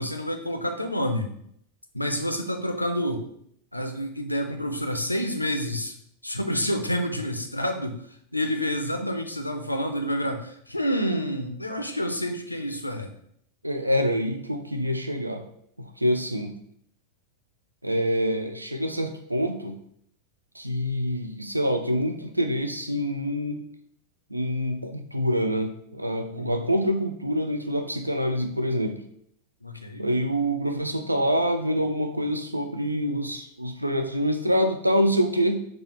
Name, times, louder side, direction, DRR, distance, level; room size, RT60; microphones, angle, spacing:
voice 1, 0.0-1.3 1.9-3.3 3.7-5.9 6.2-8.0 8.3-13.1 26.3-26.7 29.6-30.1, equal, 85° left, 5 dB, 0.4 m, -28 dB
voice 2, 13.6-15.4 15.8-16.6 17.8-19.8 20.5-23.6 24.3-29.0 30.0-35.7, equal, 85° right, 6 dB, 0.3 m, -26 dB
4.0 x 2.3 x 3.1 m, 0.69 s
figure-of-eight pair, 90°, 0 cm